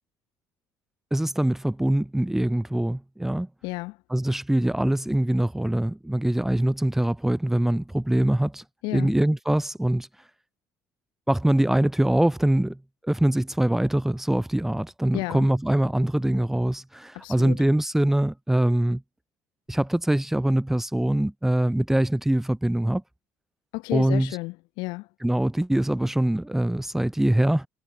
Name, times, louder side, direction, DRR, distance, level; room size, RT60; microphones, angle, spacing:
voice 1, 1.1-3.5 4.1-8.6 8.9-10.1 11.3-19.0 19.7-23.0 23.9-24.4 25.2-27.7, right 1 dB, 5° right, 0.9 m, -23 dB
voice 2, 3.6-4.0 8.8-9.1 15.1-15.5 17.1-17.6 23.7-25.1, left 24 dB, 85° left, 1.6 m, -32 dB
cardioid pair, 125°, 7 cm